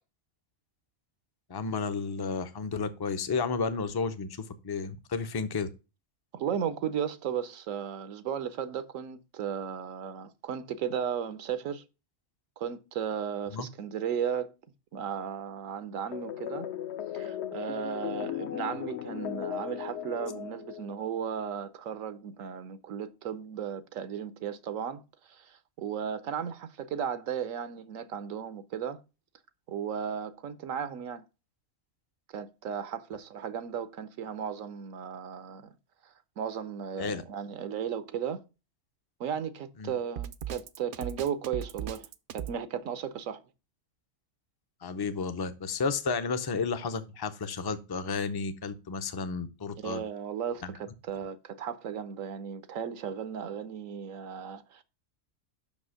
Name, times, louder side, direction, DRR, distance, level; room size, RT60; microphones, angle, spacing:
voice 1, 1.5-5.7 13.5-13.7 37.0-37.2 39.8-39.9 44.8-50.0 50.6-50.7, left 5 dB, 30° left, 0.4 m, -32 dB
voice 2, 6.3-11.8 12.6-14.5 14.9-16.7 17.1-29.0 29.7-31.2 32.3-35.7 36.0-38.4 39.2-42.1 42.3-43.4 49.8-54.8, right 8 dB, 80° right, 1.1 m, -35 dB
sound 1, 16.1-21.3, left 10 dB, 60° left, 0.9 m, -37 dB
Drum kit, 40.2-42.6, right 10 dB, 60° right, 0.6 m, -37 dB
6.0 x 5.4 x 6.2 m
omnidirectional pair, 1.4 m